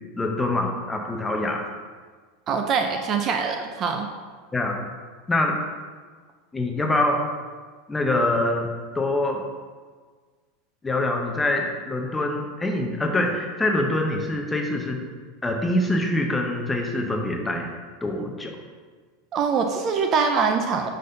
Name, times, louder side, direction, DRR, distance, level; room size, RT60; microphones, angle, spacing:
voice 1, 0.2-1.7 4.5-4.8 5.3-5.6 6.5-7.2 7.9-8.7 8.9-9.4 10.8-15.0 15.4-17.7 18.0-18.6, left 1 dB, 10° left, 2 dB, 0.6 m, -24 dB
voice 2, 2.5-4.1 19.3-20.9, right 5 dB, 30° right, 5 dB, 0.4 m, -23 dB
5.1 x 4.0 x 5.6 m, 1.5 s
supercardioid pair, 160°, 0 cm